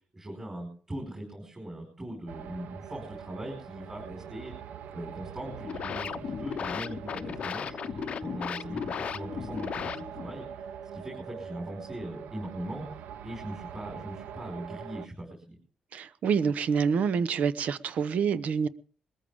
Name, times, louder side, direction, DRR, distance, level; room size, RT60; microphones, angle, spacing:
voice 1, 0.1-4.5 4.9-10.4 10.9-12.8 13.2-15.6, right 1 dB, 20° right, 5.1 m, -40 dB
sound 1, 2.3-15.1, right 8 dB, 85° right, 0.6 m, -44 dB
sound 2, 5.5-10.4, left 7 dB, 50° left, 0.7 m, -36 dB
voice 2, 15.9-18.7, right 6 dB, 65° right, 0.9 m, -27 dB
21.5 x 14.0 x 3.6 m
cardioid pair, 145°, 3 cm